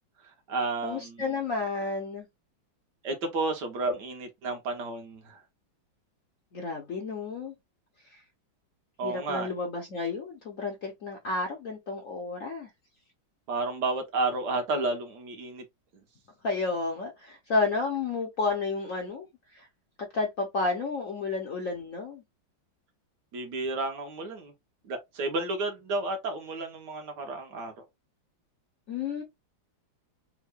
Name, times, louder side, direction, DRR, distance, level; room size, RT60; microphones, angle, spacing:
voice 1, 0.2-1.2 3.0-5.4 9.0-9.5 13.5-15.6 23.3-24.5 24.8-27.8, right 3 dB, 65° right, 1.3 m, -31 dB
voice 2, 0.8-2.3 6.5-7.5 8.0-8.2 9.0-12.7 16.4-19.3 19.5-19.7 20.1-22.2 28.9-29.2, left 3 dB, 60° left, 0.8 m, -31 dB
3.6 x 2.2 x 3.3 m
omnidirectional pair, 2.2 m